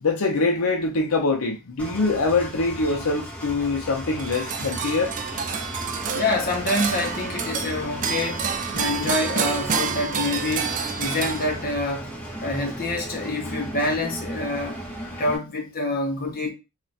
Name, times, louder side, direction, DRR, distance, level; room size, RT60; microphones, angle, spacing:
voice 1, 0.0-5.1, left 3 dB, 70° left, 0.6 m, -24 dB
Engine, 1.8-15.4, equal, 5° left, 0.7 m, -36 dB
sound 1, 4.2-11.9, right 6 dB, 35° right, 0.3 m, -29 dB
voice 2, 6.1-12.1 12.4-14.8 15.2-16.5, left 2 dB, 40° left, 0.8 m, -27 dB
2.4 x 2.3 x 4.0 m
head